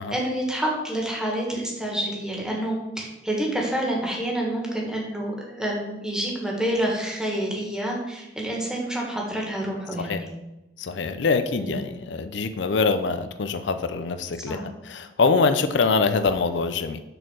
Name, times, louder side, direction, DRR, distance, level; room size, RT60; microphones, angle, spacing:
voice 1, 0.0-10.3 11.6-11.9 14.5-14.6, right 1 dB, 5° right, -2 dB, 1.7 m, -28 dB
voice 2, 10.8-14.6 14.9-17.0, left 4 dB, 70° left, 10 dB, 0.5 m, -24 dB
6.6 x 4.4 x 6.3 m, 0.95 s
head